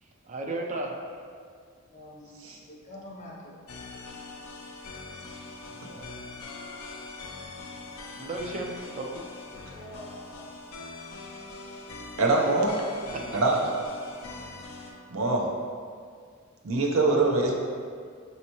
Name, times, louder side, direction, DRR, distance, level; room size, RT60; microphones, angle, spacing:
voice 1, 0.0-0.9 5.6-6.3 8.2-9.1 13.1-13.4, right 2 dB, 35° right, 0.4 m, -35 dB
voice 2, 1.9-3.6 9.7-10.5, left 1 dB, 35° left, 0.6 m, -46 dB
sound 1, 3.7-14.9, left 3 dB, 85° left, 0.5 m, -42 dB
voice 3, 12.2-12.8 13.3-13.6 15.1-15.5 16.6-17.5, right 2 dB, 75° right, 0.6 m, -23 dB
5.4 x 2.8 x 2.9 m
head